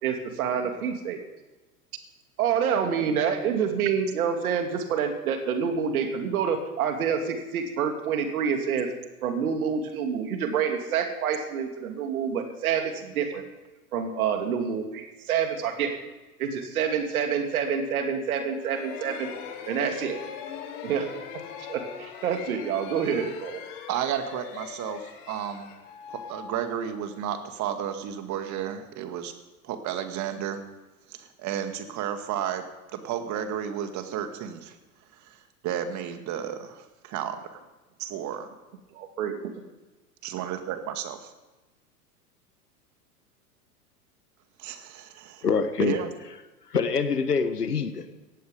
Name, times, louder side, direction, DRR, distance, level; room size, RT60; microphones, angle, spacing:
voice 1, 0.0-1.2 2.4-8.9 9.2-13.4 13.9-15.9 16.4-19.3 19.6-20.2 20.8-21.2 21.7-23.6 38.9-39.5, right 7 dB, 65° right, 5 dB, 2.8 m, -27 dB
sound 1, 18.6-27.2, left 8 dB, 55° left, 2.6 m, -41 dB
voice 2, 23.9-25.7 26.1-29.3 29.6-30.6 31.2-32.7 32.9-34.7 35.2-35.4 35.6-37.4 38.0-38.5 40.2-41.3 44.6-45.5 45.8-46.1, right 9 dB, 40° right, 7 dB, 2.2 m, -32 dB
voice 3, 45.4-46.0 46.7-48.1, left 5 dB, 90° left, 10 dB, 1.6 m, -25 dB
17.0 x 14.5 x 5.3 m, 1.1 s
hypercardioid pair, 95°, 46 cm